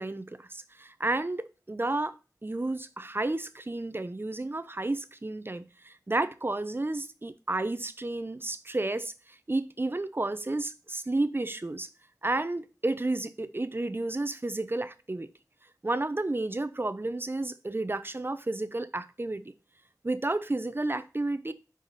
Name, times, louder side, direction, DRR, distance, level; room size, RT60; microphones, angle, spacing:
voice 1, 0.0-2.1 2.4-9.1 9.5-11.9 12.2-15.3 15.8-19.4 20.0-21.5, right 2 dB, 35° right, 0.6 m, -31 dB
5.5 x 4.9 x 4.0 m
wide cardioid pair, 55°, 7 cm